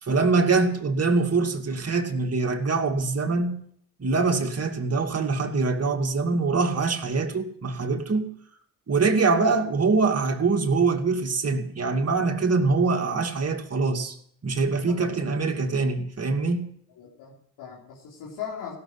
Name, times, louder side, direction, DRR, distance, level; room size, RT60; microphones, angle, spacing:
voice 1, 0.0-3.6 4.0-8.3 8.9-14.2 14.4-16.7, right 4 dB, 40° right, 2.5 m, -24 dB
voice 2, 14.9-15.3 17.0-18.7, left 7 dB, 80° left, 3.8 m, -39 dB
16.5 x 7.1 x 9.8 m
supercardioid pair, 60°, 37 cm